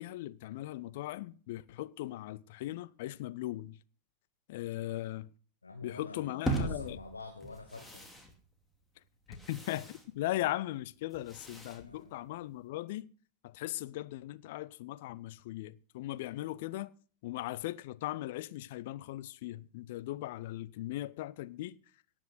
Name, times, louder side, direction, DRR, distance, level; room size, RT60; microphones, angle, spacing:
voice 1, 0.0-3.8 4.5-5.3 5.8-7.0 9.3-13.1 13.4-16.9 17.2-21.8, left 15 dB, 50° left, 0.6 m, -38 dB
voice 2, 5.6-8.0 11.8-12.2, left 3 dB, 80° left, 1.5 m, -46 dB
sound 1, 6.5-12.7, right 2 dB, 5° left, 2.4 m, -41 dB
17.5 x 6.3 x 6.4 m
figure-of-eight pair, 90°, 0 cm